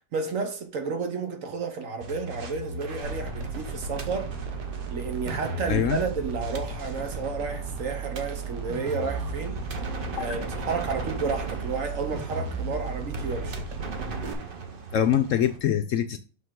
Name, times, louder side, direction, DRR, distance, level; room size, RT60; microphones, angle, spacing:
voice 1, 0.1-4.3 4.9-9.6 10.1-13.6, right 4 dB, 60° right, 1.3 m, -31 dB
sound 1, 2.0-15.6, right 2 dB, 40° right, 0.9 m, -38 dB
sound 2, 3.0-14.3, right 4 dB, 85° right, 1.6 m, -35 dB
voice 2, 5.7-6.0 10.2-10.3 14.9-16.2, left 10 dB, 70° left, 0.8 m, -24 dB
6.1 x 5.5 x 3.7 m
omnidirectional pair, 1.7 m